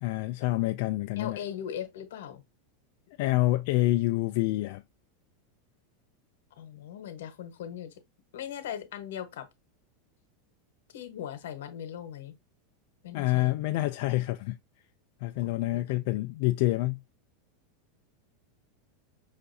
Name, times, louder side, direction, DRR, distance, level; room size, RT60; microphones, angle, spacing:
voice 1, 0.0-1.4 3.2-4.8 13.1-14.6 15.2-17.0, left 18 dB, 60° left, 0.3 m, -27 dB
voice 2, 1.2-2.4 6.6-7.9 8.3-9.5 10.9-12.3 13.0-13.5 15.7-16.0, left 9 dB, 85° left, 1.0 m, -39 dB
5.7 x 2.6 x 2.7 m
supercardioid pair, 140°, 0 cm